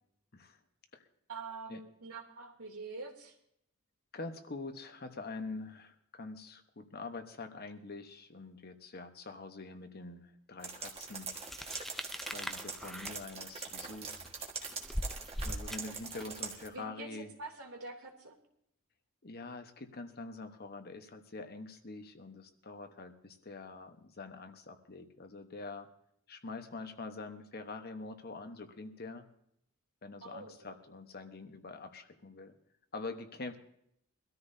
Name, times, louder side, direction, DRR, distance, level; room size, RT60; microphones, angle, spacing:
voice 1, 1.3-3.4 16.7-18.4 30.2-30.6, right 3 dB, 85° right, 1 dB, 2.9 m, -45 dB
voice 2, 4.1-11.3 12.2-14.2 15.4-17.3 19.2-25.9 26.3-29.3 30.0-32.5 32.9-33.6, left 3 dB, 45° left, 7 dB, 1.1 m, -45 dB
sound 1, 10.6-16.7, right 5 dB, 30° right, 1.6 m, -43 dB
sound 2, 11.3-16.4, equal, ahead, 0.5 m, -41 dB
23.5 x 13.5 x 2.7 m, 0.73 s
head